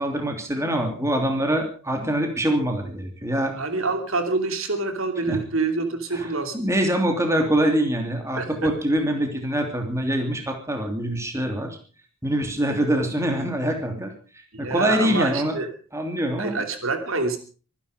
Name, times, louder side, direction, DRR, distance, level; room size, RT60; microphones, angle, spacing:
voice 1, 0.0-3.5 5.3-5.4 6.1-11.8 12.2-14.1 14.6-15.6 15.9-16.7, right 1 dB, 15° right, 4 dB, 3.0 m, -24 dB
voice 2, 3.5-6.6 8.4-8.5 14.5-15.7 16.4-17.4, right 3 dB, 65° right, 6 dB, 2.8 m, -26 dB
24.5 x 11.0 x 5.1 m, 0.39 s
head